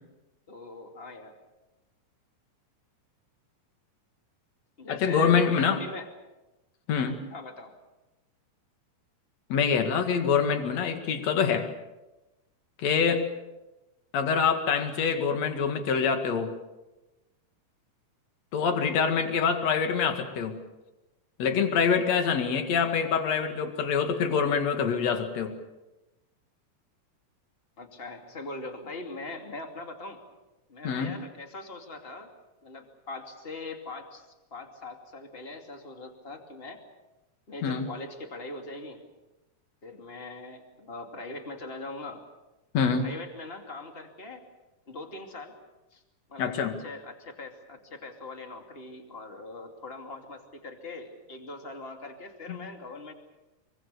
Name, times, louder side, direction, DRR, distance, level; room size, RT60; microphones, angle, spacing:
voice 1, 0.5-1.3 4.8-6.1 7.3-7.7 27.8-30.2 30.7-32.3 32.6-36.8 37.5-39.0 39.8-42.2 43.0-44.4 44.9-45.5 45.9-46.0 46.3-53.1, left 2 dB, 20° left, 4 dB, 2.4 m, -41 dB
voice 2, 4.9-5.8 6.9-7.2 9.5-11.7 12.8-13.3 14.1-16.6 18.5-20.6 21.4-25.6 30.8-31.2 37.6-37.9 42.7-43.1 46.4-46.8 52.5-52.7, left 6 dB, 60° left, 6 dB, 3.1 m, -25 dB
24.0 x 24.0 x 6.9 m, 1.0 s
omnidirectional pair, 3.6 m